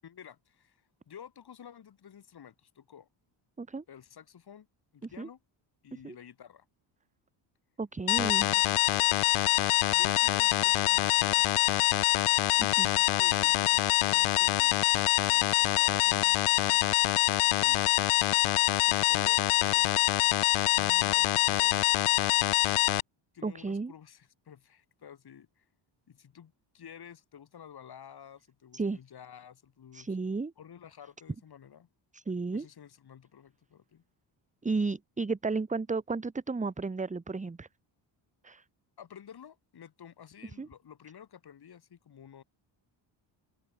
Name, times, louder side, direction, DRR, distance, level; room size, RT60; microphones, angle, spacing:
voice 1, 0.0-3.1 3.9-4.7 4.9-5.4 5.8-6.7 8.2-9.2 9.9-11.9 12.8-16.9 17.5-18.1 18.5-20.0 20.7-22.1 23.3-25.7 26.1-30.2 30.6-31.9 32.5-34.0 39.0-42.4, left 8 dB, 50° left, 6.9 m, -51 dB
voice 2, 7.8-8.5 12.6-12.9 23.4-23.9 28.7-29.0 29.9-30.5 32.1-32.6 34.6-37.7 38.4-38.6 40.6-40.7, right 4 dB, 15° right, 1.3 m, -33 dB
sound 1, 8.1-23.0, left 16 dB, 85° left, 1.6 m, -25 dB
cardioid pair, 125°, 48 cm